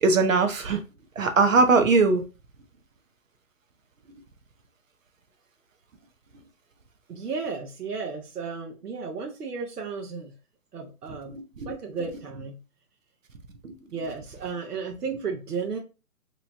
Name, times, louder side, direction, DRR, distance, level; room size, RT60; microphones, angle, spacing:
voice 1, 0.0-0.8 1.2-2.2 11.3-11.4 13.6-13.7, right 4 dB, 60° right, 0.6 m, -20 dB
voice 2, 7.1-10.3 10.7-11.3 11.6-12.6 13.9-15.8, right 5 dB, 90° right, 0.8 m, -33 dB
2.8 x 2.2 x 2.8 m
figure-of-eight pair, 150°, 45 cm